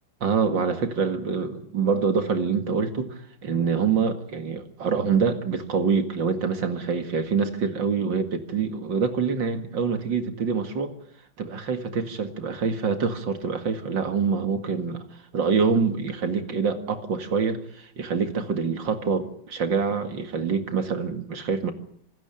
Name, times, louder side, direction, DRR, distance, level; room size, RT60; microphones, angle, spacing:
voice 1, 0.2-10.9 11.4-15.0 15.3-21.7, right 5 dB, 70° right, 8 dB, 2.7 m, -25 dB
26.5 x 13.0 x 9.0 m, 0.66 s
omnidirectional pair, 2.1 m